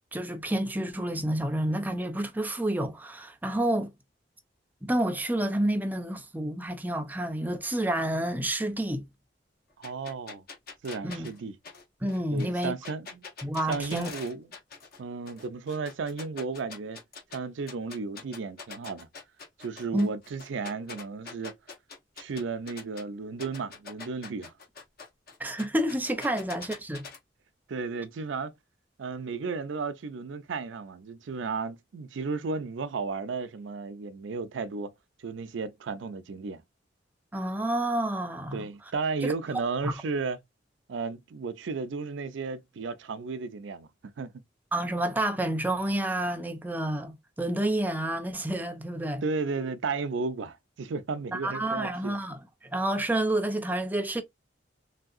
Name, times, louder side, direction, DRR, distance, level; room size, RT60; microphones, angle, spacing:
voice 1, 0.1-3.9 4.8-9.0 11.0-11.3 12.0-12.7 13.4-14.1 19.9-20.1 25.4-27.1 37.3-38.7 39.2-39.3 39.8-39.9 44.7-49.2 51.3-54.2, right 1 dB, 10° right, 0.4 m, -29 dB
sound 1, 9.8-15.0 15.3-17.4 17.7-23.0 23.4-27.2, left 5 dB, 55° left, 0.9 m, -44 dB
voice 2, 9.8-10.4 10.8-11.6 12.3-13.2 13.7-14.5 15.0-17.0 17.3-19.1 19.6-21.6 22.2-24.5 26.3-26.4 27.7-28.5 29.0-34.9 35.2-36.6 38.5-40.4 40.9-44.3 49.2-52.2, right 4 dB, 75° right, 0.4 m, -34 dB
3.2 x 2.7 x 2.4 m
head